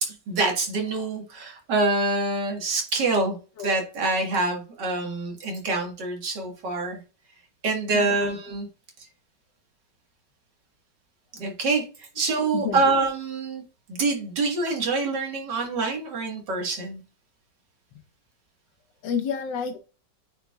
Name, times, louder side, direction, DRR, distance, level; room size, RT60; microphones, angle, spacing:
voice 1, 0.0-7.0 7.6-8.7 11.3-13.6 13.9-17.0, right 3 dB, 70° right, 2 dB, 2.1 m, -26 dB
voice 2, 7.9-8.3 12.5-12.8 19.0-19.8, left 7 dB, 80° left, 7 dB, 1.6 m, -29 dB
8.9 x 4.6 x 2.3 m, 0.34 s
omnidirectional pair, 1.9 m